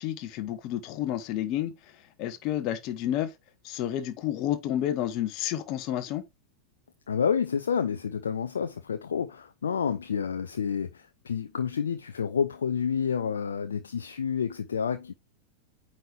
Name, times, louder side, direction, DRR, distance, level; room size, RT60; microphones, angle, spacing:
voice 1, 0.0-1.7 2.2-3.3 3.6-6.2, left 12 dB, 40° left, 1.0 m, -30 dB
voice 2, 7.1-15.1, left 7 dB, 70° left, 0.5 m, -29 dB
9.3 x 4.1 x 3.3 m
figure-of-eight pair, 90°, 0 cm